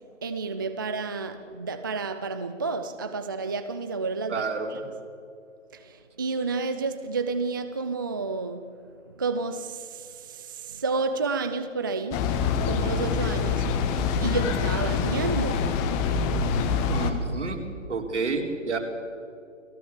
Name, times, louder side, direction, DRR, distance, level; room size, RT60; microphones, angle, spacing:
voice 1, 0.2-4.4 4.7-4.8 5.8-5.9 6.2-8.9 9.2-12.2 12.6-13.7 14.2-15.7, right 4 dB, 15° right, 0.5 m, -30 dB
voice 2, 4.3-4.8 16.9-17.6 17.9-18.8, right 4 dB, 60° right, 4.3 m, -29 dB
sound 1, 12.1-17.1, left 5 dB, 20° left, 1.6 m, -25 dB
29.5 x 18.5 x 7.3 m
figure-of-eight pair, 140°, 39 cm